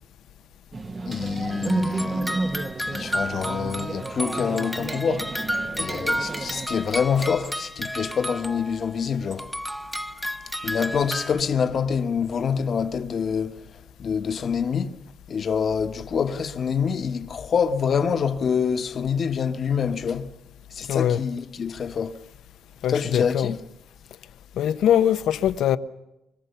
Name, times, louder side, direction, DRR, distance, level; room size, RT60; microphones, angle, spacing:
sound 1, 0.7-6.7, right 3 dB, 35° right, 0.9 m, -31 dB
voice 1, 1.1-5.3 5.7-9.5 10.6-13.7 14.0-15.0 15.3-20.3 20.7-22.2 22.9-23.6, left 6 dB, 50° left, 1.3 m, -26 dB
sound 2, 1.5-8.9 9.3-11.4, equal, ahead, 1.1 m, -32 dB
voice 2, 20.9-21.2 22.8-23.5 24.6-25.8, left 10 dB, 80° left, 0.9 m, -22 dB
25.0 x 23.0 x 6.9 m
cardioid pair, 90°, 0 cm